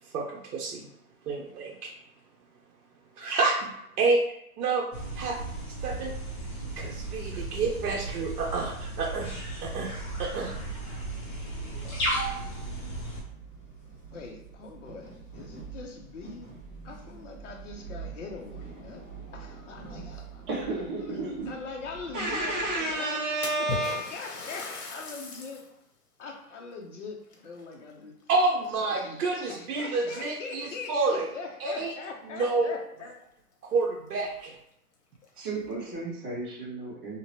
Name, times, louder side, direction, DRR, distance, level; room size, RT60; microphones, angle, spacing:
voice 1, 0.1-0.8 1.3-1.9 3.2-4.2 4.6-4.9 5.1-5.4 5.8-6.1 6.8-9.4 9.6-9.9 10.2-10.5 28.3-31.3 31.6-31.9 32.3-32.7 33.6-34.6, right 3 dB, 80° right, 0 dB, 0.8 m, -28 dB
sound 1, 4.9-13.2, right 1 dB, 30° left, 1.2 m, -35 dB
sound 2, 6.9-22.9, right 5 dB, 15° left, 0.7 m, -47 dB
voice 2, 14.1-16.5 16.8-19.1 19.3-23.2 23.6-25.6 26.2-28.2 28.8-29.2 29.5-33.1, left 4 dB, 50° left, 1 dB, 0.8 m, -42 dB
voice 3, 20.5-21.5 22.1-24.0 35.4-37.2, right 2 dB, 30° right, -8 dB, 1.1 m, -31 dB
Splash splatter, 23.4-25.7 26.2-26.3 27.2-28.3 28.6-29.1 29.9-30.0 30.5-30.6 32.7-32.8 33.1-33.2 33.8-33.9 34.3-34.4 35.1-35.7, left 4 dB, 75° left, 1.1 m, -39 dB
2.9 x 2.9 x 3.0 m, 0.77 s
hypercardioid pair, 165°, 46 cm